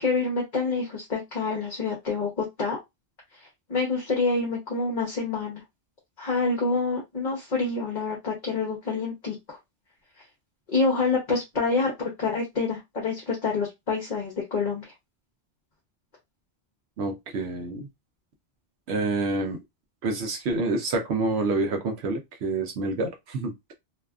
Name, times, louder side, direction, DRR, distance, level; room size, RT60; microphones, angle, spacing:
voice 1, 0.0-2.8 3.4-5.6 6.2-9.6 10.7-14.9, left 4 dB, 45° left, 0.9 m, -27 dB
voice 2, 17.0-17.9 18.9-19.6 20.0-23.7, right 3 dB, 80° right, 0.9 m, -28 dB
2.7 x 2.3 x 2.3 m
omnidirectional pair, 1.1 m